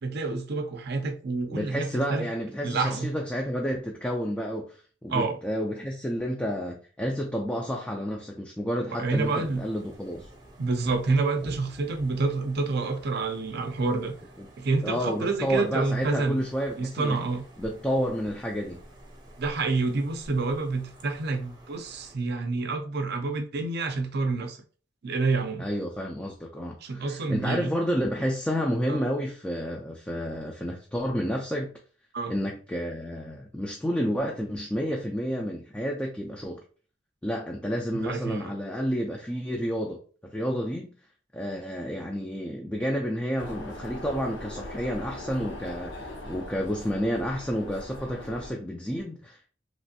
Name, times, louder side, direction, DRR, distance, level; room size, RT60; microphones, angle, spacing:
voice 1, 0.0-2.3 2.6-3.1 5.1-5.4 8.9-9.6 10.6-14.1 14.6-16.4 16.8-17.4 19.4-24.6 25.0-25.7 26.8-27.7 28.9-29.0 32.1-32.3 37.9-38.5, right 3 dB, 60° right, 0.5 m, -28 dB
voice 2, 1.5-10.2 14.4-14.5 14.8-17.2 17.6-18.8 25.6-31.7 32.3-36.6 37.2-40.0 40.3-40.9 41.3-49.5, equal, 5° left, 0.3 m, -30 dB
sound 1, 9.1-22.1, right 1 dB, 20° right, 0.7 m, -50 dB
sound 2, 43.4-48.5, left 1 dB, 75° left, 0.7 m, -40 dB
3.0 x 2.5 x 2.6 m
head